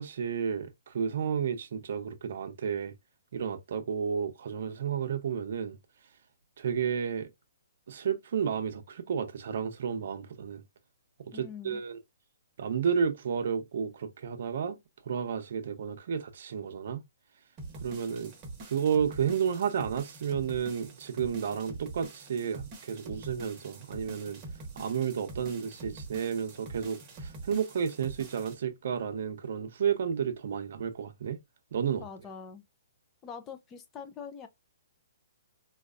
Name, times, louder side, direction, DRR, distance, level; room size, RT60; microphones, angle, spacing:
voice 1, 0.0-2.9 3.3-5.8 6.6-7.3 7.9-10.6 11.2-12.0 12.6-14.8 15.1-17.0 17.8-18.3 18.6-24.4 24.8-31.4 31.7-32.0, right 7 dB, 60° right, 0.7 m, -32 dB
voice 2, 11.3-11.8 32.0-32.6 33.2-34.5, left 6 dB, 20° left, 0.5 m, -43 dB
sound 1, 17.6-28.5, right 3 dB, 25° right, 1.0 m, -45 dB
4.4 x 2.3 x 2.4 m
hypercardioid pair, 150°, 0 cm